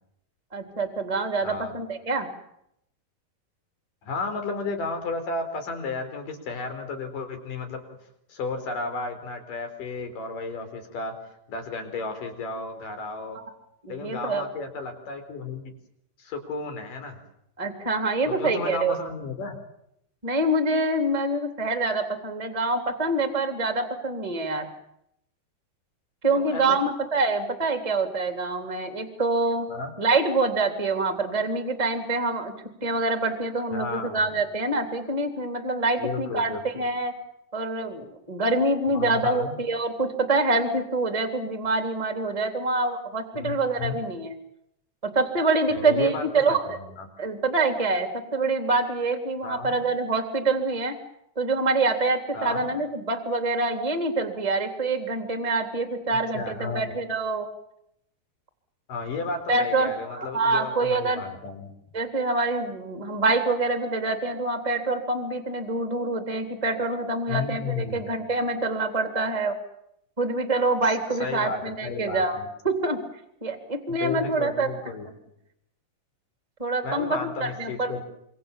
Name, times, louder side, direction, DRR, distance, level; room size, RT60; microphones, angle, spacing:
voice 1, 0.5-2.3 13.3-13.4 13.8-14.4 17.6-18.9 20.2-24.7 26.2-29.7 30.0-32.5 32.8-37.1 37.5-44.4 45.0-46.8 47.2-50.9 51.4-57.5 59.5-61.2 61.9-69.6 70.2-72.4 72.6-73.0 73.4-74.7 76.6-77.9, right 2 dB, 10° right, 6 dB, 2.7 m, -26 dB
voice 2, 1.4-1.7 4.0-7.8 8.3-11.2 11.5-13.4 13.9-15.7 16.2-17.2 18.2-19.6 26.3-26.9 29.7-29.9 33.7-34.2 36.0-36.8 38.9-39.6 43.3-44.0 45.7-47.1 49.4-49.8 52.3-52.7 56.1-56.9 58.9-61.7 67.3-68.1 70.8-70.9 71.2-72.5 73.9-75.1 76.8-78.0, left 4 dB, 55° left, 7 dB, 5.6 m, -33 dB
27.0 x 25.0 x 7.4 m, 0.77 s
omnidirectional pair, 4.5 m